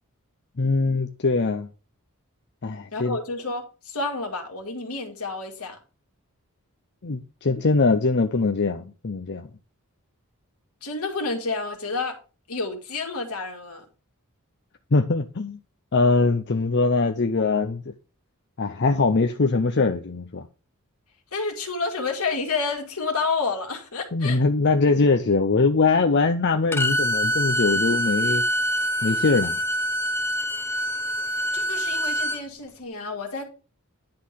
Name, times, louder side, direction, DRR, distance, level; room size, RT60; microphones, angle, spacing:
voice 1, 0.6-1.7 2.6-3.2 7.0-9.5 14.9-15.6 15.9-17.8 18.6-20.5 24.1-28.4 29.0-29.6, left 3 dB, 50° left, 0.7 m, -22 dB
voice 2, 2.9-5.8 10.8-12.2 12.5-13.8 21.3-24.4 31.5-33.4, left 4 dB, 75° left, 2.1 m, -29 dB
Bowed string instrument, 26.7-32.4, equal, 10° left, 0.8 m, -25 dB
10.5 x 3.9 x 6.4 m
head